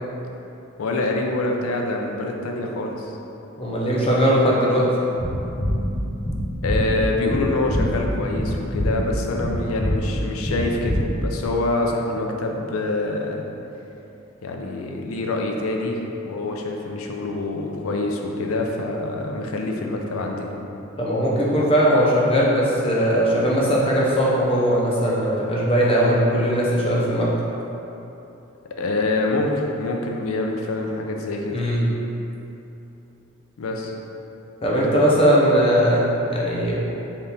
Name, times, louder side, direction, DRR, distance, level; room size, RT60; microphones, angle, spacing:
voice 1, 0.8-3.1 6.6-13.4 14.4-16.0 16.2-20.5 28.7-31.6 33.6-33.9, left 2 dB, 85° left, 1 dB, 0.4 m, -25 dB
voice 2, 3.6-4.9 21.0-27.3 31.5-31.8 34.6-36.8, equal, 25° left, -5 dB, 0.6 m, -19 dB
sound 1, 5.2-11.5, equal, 60° left, 0.8 m, -25 dB
3.5 x 2.4 x 4.1 m, 3.0 s
head